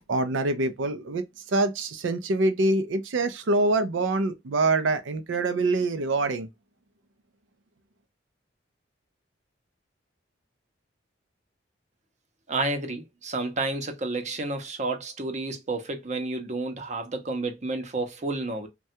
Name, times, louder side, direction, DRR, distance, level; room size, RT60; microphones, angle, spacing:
voice 1, 0.1-6.5, right 2 dB, 80° right, 0.5 m, -25 dB
voice 2, 12.5-18.7, right 2 dB, 40° right, 0.7 m, -30 dB
3.3 x 2.2 x 2.7 m
head